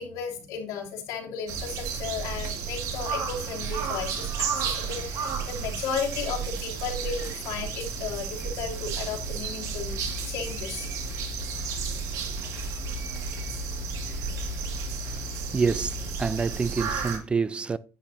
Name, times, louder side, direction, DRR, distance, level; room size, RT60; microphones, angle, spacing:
voice 1, 0.0-10.9 11.6-11.7, left 6 dB, 85° left, 2.9 m, -34 dB
sound 1, 1.5-17.2, right 5 dB, 70° right, 2.1 m, -32 dB
voice 2, 15.5-17.8, right 5 dB, 20° right, 0.4 m, -27 dB
10.5 x 8.9 x 2.7 m
cardioid pair, 150°, 6 cm